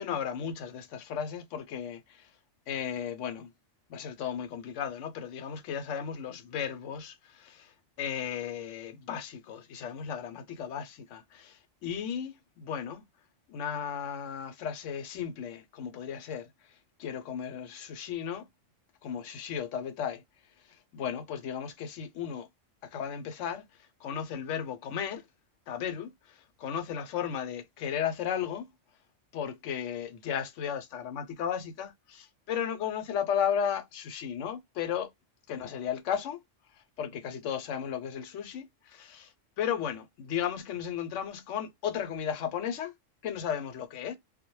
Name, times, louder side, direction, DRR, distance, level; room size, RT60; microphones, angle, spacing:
voice 1, 0.0-2.3 2.7-3.5 3.9-7.7 8.0-13.0 13.5-16.5 17.0-18.5 19.0-20.2 20.9-22.5 22.9-23.6 24.0-25.2 25.7-28.6 29.3-35.1 35.5-36.4 37.0-39.3 39.6-42.9 43.2-44.2, left 8 dB, 80° left, 0.9 m, -35 dB
2.2 x 2.1 x 3.0 m
omnidirectional pair, 1.3 m